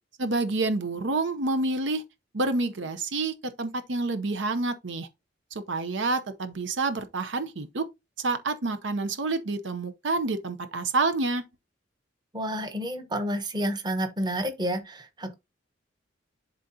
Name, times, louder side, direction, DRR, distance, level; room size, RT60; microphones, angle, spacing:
voice 1, 0.2-2.0 2.3-5.1 5.5-7.9 8.2-11.4, right 3 dB, 75° right, 0.7 m, -28 dB
voice 2, 12.3-15.3, equal, 25° right, 1.1 m, -30 dB
11.5 x 3.8 x 2.7 m
head